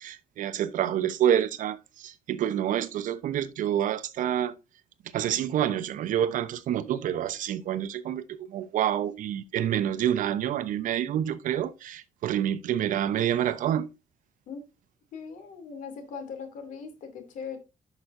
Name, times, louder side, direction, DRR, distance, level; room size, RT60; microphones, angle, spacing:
voice 1, 0.0-4.6 5.1-13.9, right 10 dB, 75° right, 0.8 m, -28 dB
voice 2, 15.1-17.6, left 6 dB, 80° left, 2.6 m, -39 dB
11.0 x 6.0 x 2.6 m
cardioid pair, 140°, 13 cm